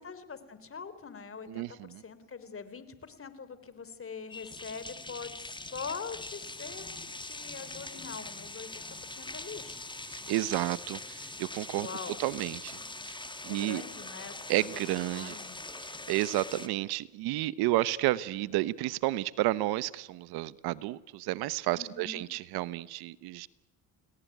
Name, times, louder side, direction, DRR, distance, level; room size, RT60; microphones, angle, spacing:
voice 1, 0.0-6.9 7.2-9.8 11.8-12.2 13.5-15.6 21.8-22.2, left 5 dB, 35° left, 13 dB, 3.9 m, -43 dB
voice 2, 1.5-2.0 10.1-11.9 12.2-12.8 13.0-13.8 14.5-15.4 15.8-23.5, right 17 dB, 80° right, 18 dB, 1.1 m, -31 dB
sound 1, 4.3-16.7, left 2 dB, 10° left, 2.2 m, -43 dB
30.0 x 19.5 x 9.4 m, 1.1 s
supercardioid pair, 80°, 38 cm